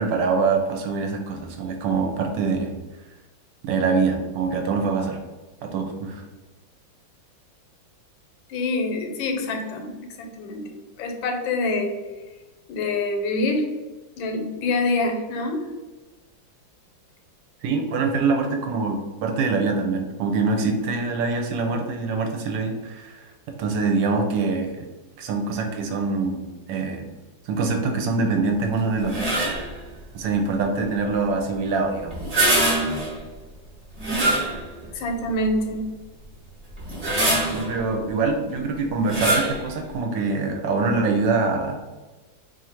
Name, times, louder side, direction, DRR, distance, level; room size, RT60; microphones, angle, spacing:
voice 1, 0.0-2.7 3.6-5.2 5.6-6.2 17.6-23.3 23.6-24.9 25.2-27.1 27.4-29.7 30.1-32.1 37.5-41.8, right 4 dB, 75° right, 3 dB, 1.2 m, -24 dB
voice 2, 8.5-10.7 11.0-11.9 12.7-13.7 14.2-15.6 34.9-35.9, left 2 dB, 85° left, 4 dB, 1.4 m, -26 dB
sound 1, 29.0-29.7 32.1-33.2 34.0-34.9 35.5-35.6 36.8-37.7 39.0-39.6, right 1 dB, 35° right, 1.0 m, -23 dB
3.0 x 2.5 x 4.2 m, 1.2 s
omnidirectional pair, 2.1 m